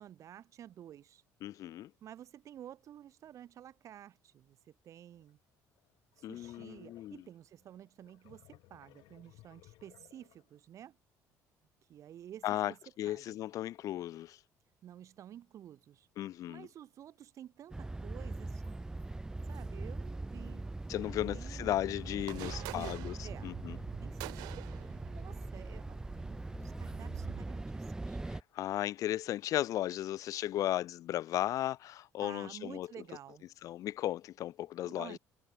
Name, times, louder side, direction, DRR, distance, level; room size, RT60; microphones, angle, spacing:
voice 1, 0.0-1.2 2.0-5.4 6.2-11.0 11.9-12.8 13.0-13.3 14.8-16.1 16.5-18.8 19.5-20.7 21.1-21.7 22.4-23.5 24.0-24.7 25.1-28.2 32.2-33.4 34.9-35.2, right 11 dB, 50° right, 1.4 m, -52 dB
voice 2, 1.4-1.9 6.2-7.2 12.4-14.4 16.2-16.7 20.9-23.1 23.4-23.8 28.5-32.9 33.6-35.2, left 13 dB, 60° left, 0.4 m, -35 dB
sound 1, 5.1-5.3 5.8-10.6, left 19 dB, 80° left, 2.0 m, -61 dB
sound 2, 17.7-28.4, right 2 dB, 10° right, 0.6 m, -41 dB
sound 3, 22.1-27.4, right 24 dB, 90° right, 0.3 m, -48 dB
cardioid pair, 125°, 7 cm